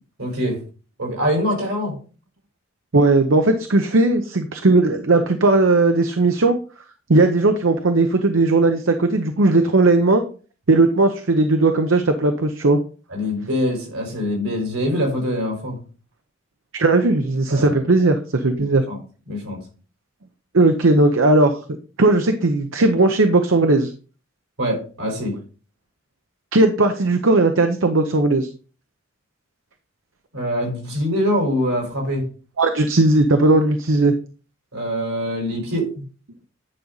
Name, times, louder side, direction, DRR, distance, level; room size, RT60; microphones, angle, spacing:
voice 1, 0.2-0.6 1.0-1.9 13.1-15.8 17.5-17.7 18.6-19.0 19.3-19.6 24.6-25.3 30.3-32.2 34.7-35.9, equal, 90° right, 1 dB, 4.3 m, -24 dB
voice 2, 2.9-6.6 7.1-10.2 10.7-12.8 16.7-18.8 20.5-21.6 22.0-23.9 26.5-28.5 32.6-34.1, right 2 dB, 70° right, 7 dB, 0.8 m, -17 dB
9.9 x 5.2 x 4.0 m, 0.37 s
head